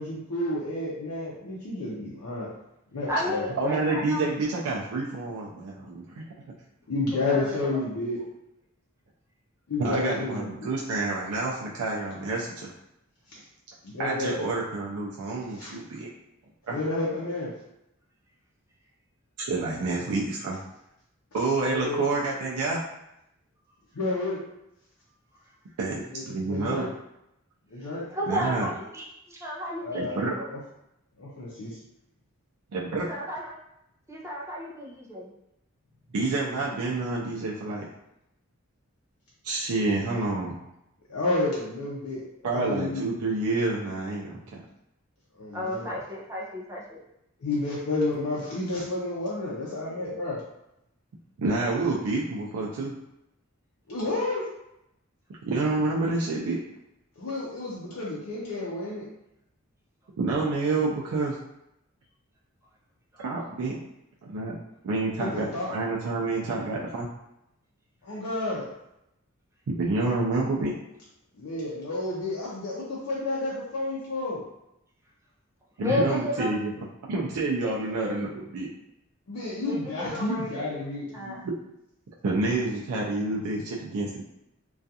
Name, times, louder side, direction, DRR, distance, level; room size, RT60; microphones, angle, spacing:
voice 1, 0.0-2.5 2.9-3.5 6.9-8.2 9.7-10.7 13.3-13.4 13.8-14.4 15.6-15.7 16.7-17.5 21.7-22.0 23.9-24.4 26.1-26.9 27.7-28.0 29.8-30.6 31.2-31.8 39.8-39.9 41.1-42.2 42.5-43.1 45.4-45.9 47.4-50.4 53.9-54.4 57.2-59.1 65.2-65.7 68.0-68.7 71.4-74.4 79.3-81.4, left 2 dB, 85° left, -7 dB, 0.5 m, -31 dB
voice 2, 3.1-4.3 7.1-7.7 28.1-30.5 33.1-33.6 34.1-35.3 45.5-47.0 63.1-63.2 75.8-76.5 77.6-78.2 79.6-80.7 81.1-81.5, left 1 dB, 15° right, -3 dB, 0.4 m, -33 dB
voice 3, 3.6-6.2 9.8-12.7 14.0-16.1 16.7-16.8 19.4-20.6 21.3-22.8 25.8-26.0 26.3-26.8 28.3-28.7 29.9-30.3 32.7-33.1 36.1-37.9 39.4-40.6 42.4-44.7 51.4-52.9 55.5-56.6 60.2-61.4 63.2-63.8 64.2-64.6 64.8-67.1 69.7-70.8 75.8-76.7 77.1-78.7 82.2-84.2, right 3 dB, 85° right, -3 dB, 0.4 m, -28 dB
2.3 x 2.3 x 2.7 m, 0.84 s
head